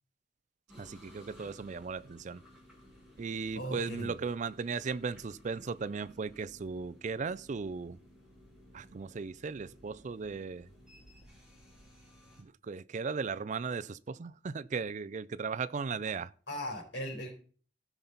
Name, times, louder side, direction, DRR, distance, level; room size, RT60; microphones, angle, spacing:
sound 1, 0.7-12.4, equal, 5° right, 4.0 m, -57 dB
voice 1, 0.8-2.4 3.2-8.0 8.7-10.7 12.4-16.3, right 5 dB, 40° right, 0.4 m, -37 dB
voice 2, 3.5-4.1 16.5-17.3, equal, 70° left, 4.2 m, -38 dB
16.0 x 5.8 x 4.0 m
head